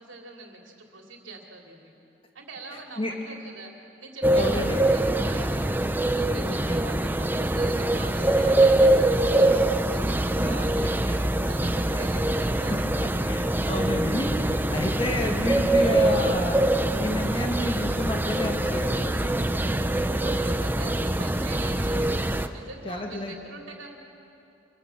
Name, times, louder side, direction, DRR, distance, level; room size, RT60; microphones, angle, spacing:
voice 1, 0.0-1.9 2.3-3.7 4.0-5.8 6.1-11.2 11.5-12.8 19.9-22.3 22.5-24.0, right 3 dB, 80° right, 1 dB, 3.0 m, -43 dB
sound 1, 4.2-22.5, right 1 dB, 10° right, 0.6 m, -24 dB
voice 2, 4.3-4.8 6.4-6.8 11.1-11.2 13.3-16.6 17.0-19.3 22.8-23.3, left 1 dB, 25° left, 2 dB, 1.7 m, -30 dB
26.0 x 19.5 x 7.3 m, 2.7 s
head